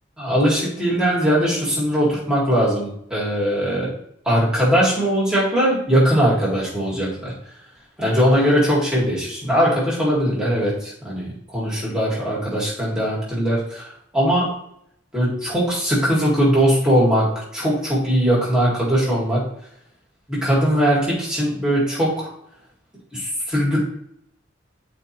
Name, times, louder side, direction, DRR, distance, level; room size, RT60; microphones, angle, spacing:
voice 1, 0.2-3.9 4.3-7.3 8.0-14.6 15.1-19.4 20.3-22.3 23.1-23.8, equal, 5° right, -6 dB, 2.1 m, -20 dB
11.0 x 4.3 x 3.0 m, 0.72 s
head